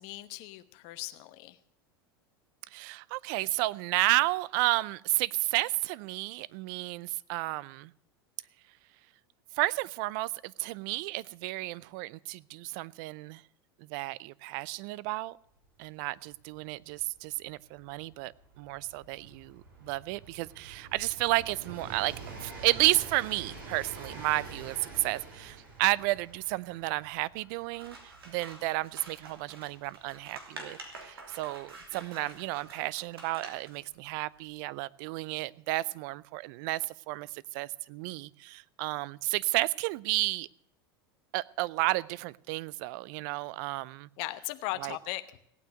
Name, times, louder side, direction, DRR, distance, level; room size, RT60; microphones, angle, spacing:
voice 1, 0.0-1.6 32.1-32.3 44.2-45.2, left 17 dB, 55° left, 11 dB, 1.0 m, -38 dB
voice 2, 2.7-7.9 9.6-13.4 13.9-15.4 15.8-18.3 18.6-22.1 22.4-28.0 28.3-30.8 31.0-40.5 41.3-44.1 44.8-45.0, right 20 dB, 60° right, 22 dB, 0.5 m, -32 dB
Train, 15.6-15.7 15.9-32.5 33.5-33.6, right 4 dB, 75° right, 6.3 m, -48 dB
Scissors, 27.7-33.8, right 3 dB, 90° right, 3.0 m, -48 dB
17.0 x 9.1 x 6.4 m, 0.70 s
hypercardioid pair, 90°, 12 cm